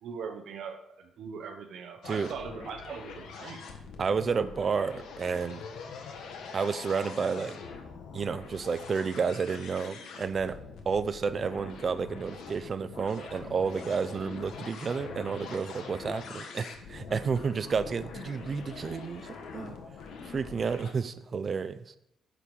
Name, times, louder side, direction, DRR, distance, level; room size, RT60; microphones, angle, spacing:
voice 1, 0.0-3.6, right 6 dB, 60° right, 5 dB, 1.1 m, -41 dB
sound 1, 2.0-20.9, left 5 dB, 75° left, 1.5 m, -44 dB
voice 2, 4.0-5.6 6.5-7.6 8.1-10.6 10.9-19.8 20.3-21.9, right 5 dB, 30° right, 12 dB, 0.5 m, -31 dB
9.9 x 6.5 x 5.3 m, 0.79 s
cardioid pair, 170°, 0 cm